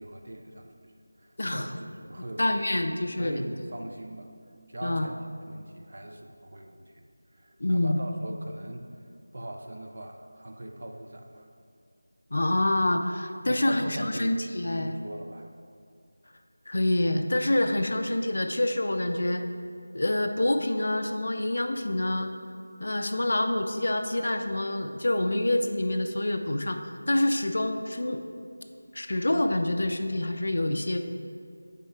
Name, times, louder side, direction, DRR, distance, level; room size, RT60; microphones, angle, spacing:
voice 1, 0.0-2.6 2.9-4.3 4.7-7.0 7.3-9.0 9.3-11.5 13.4-14.4 14.8-15.5, right 1 dB, 35° right, 3 dB, 0.4 m, -41 dB
voice 2, 2.4-3.4 4.8-5.1 7.6-8.0 12.3-15.0 16.7-19.4 19.9-22.3 22.8-28.2 28.9-31.0, left 1 dB, 40° left, 6 dB, 0.3 m, -27 dB
5.4 x 4.0 x 4.7 m, 2.3 s
figure-of-eight pair, 180°, 0 cm